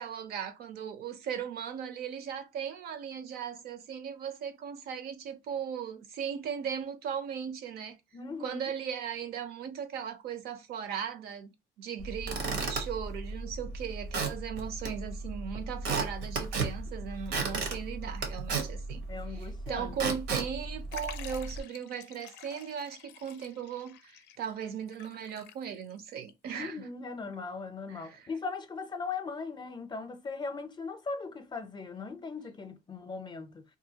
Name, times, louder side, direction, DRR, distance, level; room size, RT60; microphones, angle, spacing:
voice 1, 0.0-8.0 8.4-19.0 19.3-26.8 27.9-28.3, right 8 dB, 65° right, 0.6 m, -38 dB
voice 2, 8.1-8.6 19.1-20.2 26.5-33.6, left 4 dB, 25° left, 0.5 m, -39 dB
Squeak / Wood, 12.0-21.6, right 4 dB, 85° right, 0.9 m, -35 dB
Liquid, 20.9-26.0 26.3-26.4 27.3-27.4, left 10 dB, 85° left, 0.4 m, -49 dB
2.6 x 2.3 x 2.7 m
cardioid pair, 110°, 17 cm